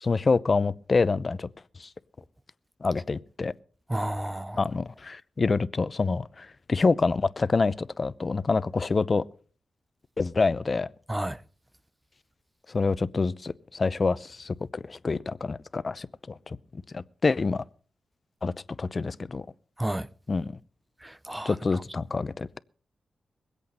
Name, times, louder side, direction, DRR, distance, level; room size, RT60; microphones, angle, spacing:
voice 1, 0.0-1.5 1.8-1.9 2.8-3.5 4.6-9.2 10.2-10.9 12.7-16.6 16.9-17.6 18.4-18.5 18.8-19.4 20.3-20.5 21.4-22.6, left 4 dB, 45° left, 0.7 m, -26 dB
voice 2, 3.9-4.6 11.1-11.4 19.8-20.1 21.0-21.5, right 1 dB, 15° right, 0.6 m, -31 dB
22.0 x 8.3 x 5.5 m
cardioid pair, 70°, 0 cm